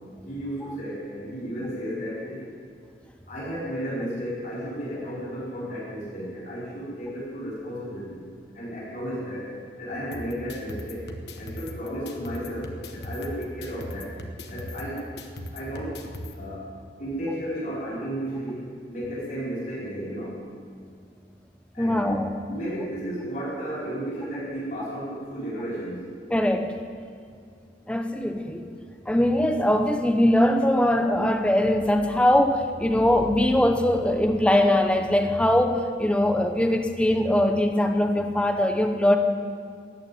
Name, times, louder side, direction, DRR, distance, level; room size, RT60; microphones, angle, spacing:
voice 1, 0.2-2.5 3.3-8.2 8.5-9.5 9.8-11.0 11.4-14.1 14.5-15.0 15.5-16.0 16.3-16.7 17.0-20.4 21.7-22.0 22.5-26.1, equal, 45° left, -8 dB, 4.8 m, -33 dB
sound 1, 10.1-16.3, left 1 dB, 70° left, 1.3 m, -39 dB
voice 2, 21.8-22.3 26.3-26.7 27.9-28.7 29.1-39.2, left 1 dB, 5° left, 5 dB, 0.9 m, -21 dB
14.0 x 9.1 x 9.2 m, 2.3 s
head